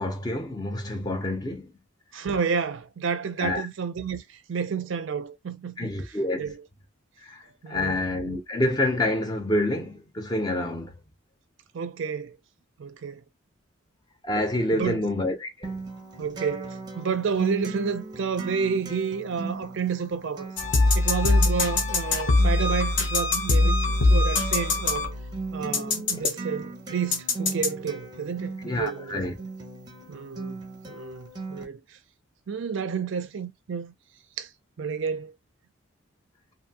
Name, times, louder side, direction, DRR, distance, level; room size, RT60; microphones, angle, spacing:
voice 1, 0.0-1.7 2.1-2.3 3.4-3.7 5.8-6.4 7.2-10.9 14.2-15.8 26.1-26.3 28.6-29.3, left 1 dB, 20° left, 0.5 m, -28 dB
voice 2, 2.1-4.2 4.5-5.9 6.4-6.6 7.6-8.0 11.7-12.4 12.8-13.2 14.8-15.0 16.2-20.5 20.9-25.1 25.5-29.3 30.1-30.6 30.9-31.8 32.5-33.9 34.4-34.5 34.8-35.3, right 6 dB, 60° right, 0.4 m, -30 dB
Acoustic guitar, 15.6-31.6, right 3 dB, 20° right, 0.6 m, -38 dB
sound 1, 20.6-25.4 25.7-26.3 27.1-27.7, left 2 dB, 60° left, 0.7 m, -22 dB
2.6 x 2.5 x 2.7 m
head